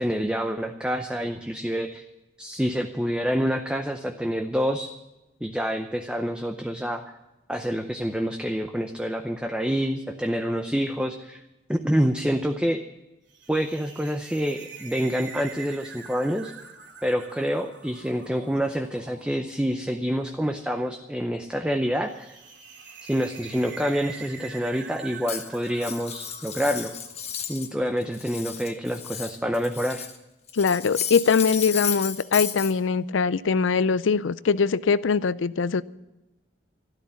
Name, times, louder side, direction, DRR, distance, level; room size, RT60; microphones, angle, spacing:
voice 1, 0.0-2.1 2.4-4.9 5.4-7.0 7.5-11.4 11.7-12.8 13.5-16.5 17.0-22.4 23.0-26.9 27.5-30.1, equal, 5° right, 5 dB, 0.6 m, -27 dB
Alien engine, 13.3-27.6, right 5 dB, 75° right, 2.4 m, -45 dB
Cutlery silverware, 25.3-27.7 28.0-30.2 30.5-32.7, left 8 dB, 35° left, 1.2 m, -33 dB
voice 2, 30.5-35.8, left 5 dB, 90° left, 17 dB, 0.5 m, -22 dB
13.0 x 12.0 x 7.1 m, 0.99 s
head